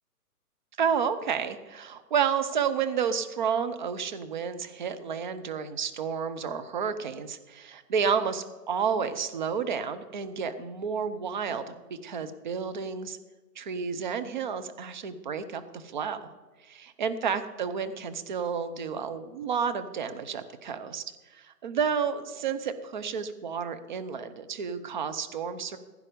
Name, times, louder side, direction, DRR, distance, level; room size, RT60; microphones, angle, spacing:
voice 1, 0.8-13.2 13.6-16.3 16.7-25.8, right 6 dB, 30° right, 11 dB, 0.8 m, -31 dB
16.0 x 9.7 x 5.2 m, 1.2 s
hypercardioid pair, 155°, 47 cm